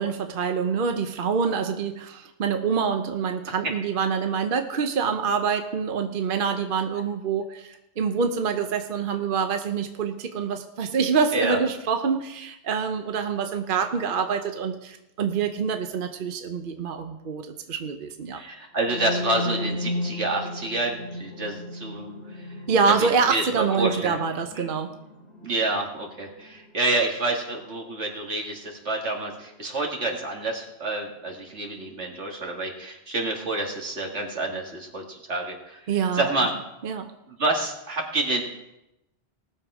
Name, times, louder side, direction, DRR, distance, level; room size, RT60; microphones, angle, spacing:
voice 1, 0.0-18.4 22.7-24.9 35.9-36.5 36.8-37.1, right 6 dB, 55° right, 6 dB, 0.9 m, -26 dB
voice 2, 18.3-22.5 22.9-24.2 24.6-24.7 25.4-35.8 36.1-36.5 37.3-38.4, right 2 dB, 80° right, 1 dB, 2.3 m, -28 dB
sound 1, 18.8-26.6, left 1 dB, 65° left, 2.4 m, -35 dB
18.5 x 7.1 x 4.9 m, 0.89 s
omnidirectional pair, 1.2 m